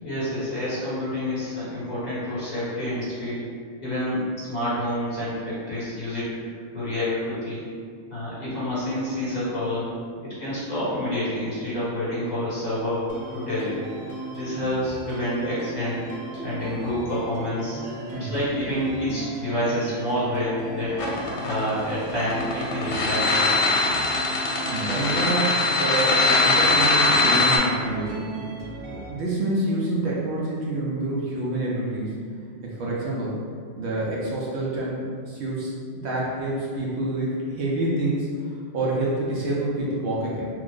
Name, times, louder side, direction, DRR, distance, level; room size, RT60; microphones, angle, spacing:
voice 1, 0.0-3.4 3.8-6.3 6.7-7.6 8.1-9.9 10.2-13.8 14.3-16.0 16.4-17.8 18.1-23.4 35.2-35.3, left 1 dB, 35° left, -10 dB, 1.2 m, -28 dB
sound 1, 13.1-29.1, right 1 dB, 50° right, 0.3 m, -37 dB
sound 2, 21.0-27.6, left 3 dB, 70° left, 0.9 m, -21 dB
voice 2, 24.7-28.3 28.9-32.2 32.6-33.4 33.8-38.3 38.7-40.5, right 2 dB, 65° right, -5 dB, 0.8 m, -27 dB
3.2 x 2.0 x 3.5 m, 2.2 s
omnidirectional pair, 1.3 m